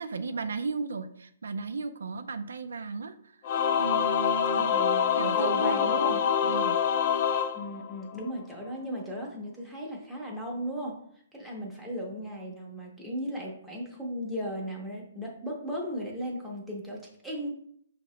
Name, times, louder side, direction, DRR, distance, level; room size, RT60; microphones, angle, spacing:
voice 1, 0.0-3.4 3.8-4.7 5.2-6.7, right 4 dB, 90° right, 9 dB, 0.3 m, -35 dB
Singing / Musical instrument, 3.4-8.3, left 8 dB, 40° left, 0.3 m, -26 dB
voice 2, 4.5-6.3 7.5-11.0 11.3-17.5, equal, ahead, -3 dB, 0.7 m, -36 dB
5.1 x 2.8 x 3.1 m, 0.67 s
hypercardioid pair, 165°, 0 cm